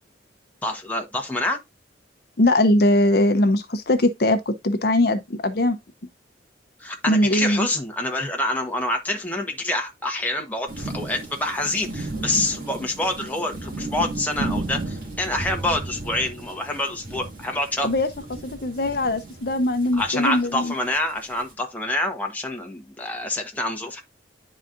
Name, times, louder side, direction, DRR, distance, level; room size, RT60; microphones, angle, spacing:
voice 1, 0.6-1.6 6.8-17.9 19.9-24.0, left 1 dB, 10° left, 1.1 m, -27 dB
voice 2, 2.4-5.8 7.1-7.7 17.8-18.1 18.4-20.7, left 1 dB, 55° left, 0.7 m, -21 dB
sound 1, 10.7-21.5, right 2 dB, 50° right, 2.1 m, -34 dB
10.5 x 4.1 x 2.5 m
head